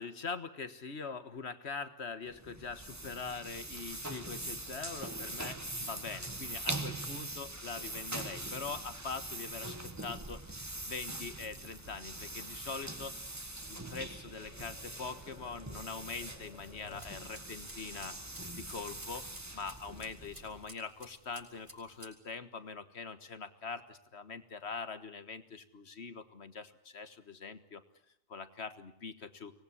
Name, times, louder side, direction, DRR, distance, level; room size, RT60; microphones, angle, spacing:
voice 1, 0.0-18.2 18.5-19.2 19.5-27.8 28.3-29.5, left 5 dB, 65° left, 11 dB, 1.8 m, -43 dB
sound 1, 2.3-20.8, right 1 dB, 15° right, 1.4 m, -43 dB
Tap, 9.7-17.2, left 2 dB, 80° left, 2.8 m, -59 dB
sound 2, 16.7-22.1, right 1 dB, 45° right, 6.1 m, -56 dB
24.5 x 19.5 x 9.8 m, 0.75 s
omnidirectional pair, 1.2 m